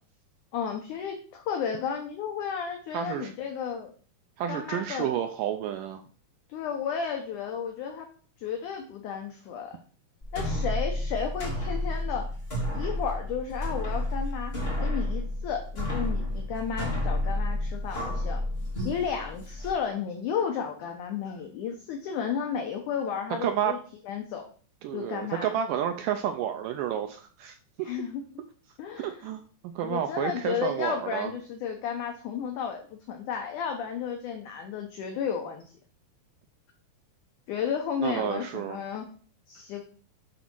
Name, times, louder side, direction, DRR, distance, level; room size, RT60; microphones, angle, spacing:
voice 1, 0.5-3.9 4.5-5.2 6.5-8.1 8.4-9.8 10.3-12.3 12.7-14.5 14.8-18.4 18.8-23.8 24.0-24.5 24.9-25.6 27.8-28.2 28.8-29.3 29.8-35.6 37.5-39.1 39.5-39.8, left 7 dB, 70° left, 4 dB, 2.1 m, -33 dB
voice 2, 2.9-3.3 4.4-6.0 23.4-23.8 24.8-27.9 29.0-31.3 38.0-38.8, right 10 dB, 80° right, 7 dB, 1.9 m, -30 dB
sound 1, 10.2-19.7, left 1 dB, 20° left, 2.1 m, -31 dB
10.5 x 4.1 x 6.1 m, 0.42 s
omnidirectional pair, 4.4 m